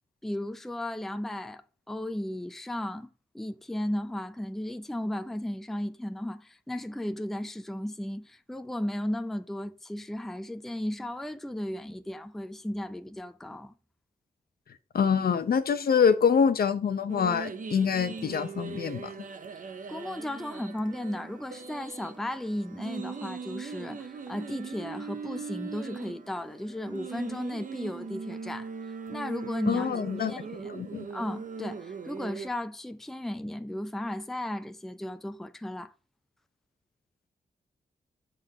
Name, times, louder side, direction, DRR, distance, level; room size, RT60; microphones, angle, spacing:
voice 1, 0.2-13.7 19.9-28.7 29.1-30.7 31.1-35.9, left 1 dB, ahead, 0.4 m, -35 dB
voice 2, 14.9-19.1 29.7-30.3 30.7-31.1, left 6 dB, 75° left, 0.7 m, -25 dB
sound 1, 17.1-32.5, right 5 dB, 55° right, 0.7 m, -40 dB
6.4 x 3.8 x 5.4 m
wide cardioid pair, 110°, 16 cm